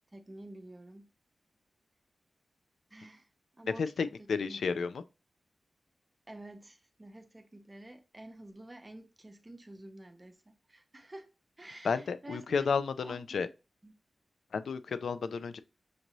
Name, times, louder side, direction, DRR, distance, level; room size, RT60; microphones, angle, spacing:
voice 1, 0.1-1.1 2.9-3.3 3.6-4.9 6.3-12.7 13.0-13.5 13.8-13.9, right 1 dB, 20° right, 0.6 m, -50 dB
voice 2, 3.8-5.0 11.8-13.5 14.5-15.6, left 5 dB, 85° left, 0.3 m, -32 dB
6.3 x 2.6 x 3.0 m
wide cardioid pair, 170°, 0 cm